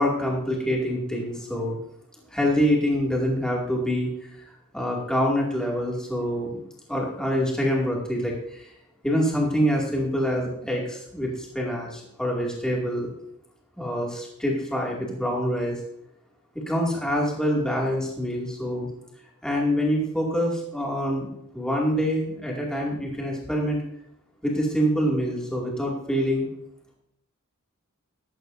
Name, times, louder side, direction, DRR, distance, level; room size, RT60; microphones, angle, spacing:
voice 1, 0.0-1.8 2.3-4.1 4.7-6.6 6.9-8.7 9.0-13.1 13.8-15.8 16.6-18.9 19.4-21.3 21.5-23.8 24.4-26.5, equal, 5° left, -3 dB, 2.3 m, -25 dB
15.0 x 12.0 x 2.6 m, 0.76 s
head